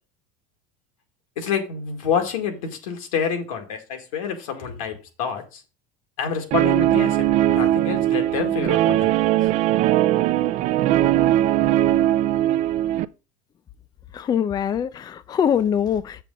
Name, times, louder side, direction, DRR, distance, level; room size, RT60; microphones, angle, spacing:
voice 1, 1.4-5.6 6.2-9.3, left 7 dB, 90° left, 2.1 m, -28 dB
Guitar, 6.5-13.0, right 13 dB, 45° right, 0.5 m, -20 dB
voice 2, 14.1-16.2, left 8 dB, 25° left, 0.4 m, -23 dB
7.3 x 6.8 x 3.9 m
supercardioid pair, 115°, 17 cm